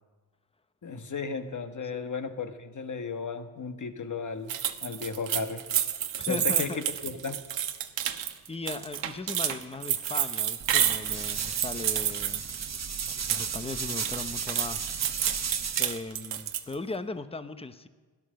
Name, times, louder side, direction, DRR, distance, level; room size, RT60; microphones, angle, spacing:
voice 1, 0.8-4.6 4.8-5.6 6.3-7.4, left 5 dB, 40° left, 8 dB, 1.5 m, -34 dB
sound 1, 4.5-13.6 13.9-16.7, right 10 dB, 75° right, 1.2 m, -30 dB
voice 2, 6.2-6.8 8.5-12.5 13.3-14.8 15.8-17.9, left 3 dB, 15° left, 11 dB, 0.9 m, -37 dB
sound 2, 10.6-16.0, right 6 dB, 35° right, 1.1 m, -35 dB
17.0 x 11.5 x 6.5 m, 1.4 s
cardioid pair, 80°, 45 cm